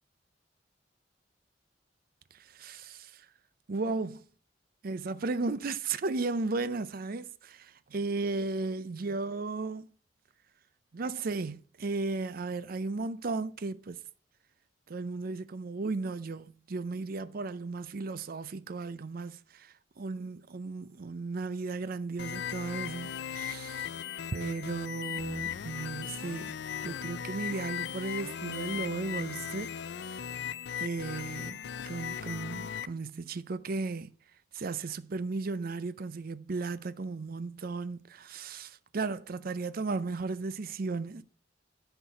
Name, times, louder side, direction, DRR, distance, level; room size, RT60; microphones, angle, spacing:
voice 1, 2.3-3.3 3.7-4.2 4.8-9.9 10.9-14.0 14.9-23.9 24.3-29.7 30.1-30.2 30.8-34.1 34.5-41.2, right 3 dB, 55° right, 0.5 m, -35 dB
sound 1, 22.2-32.9, left 8 dB, 70° left, 0.4 m, -38 dB
10.0 x 4.6 x 5.6 m
head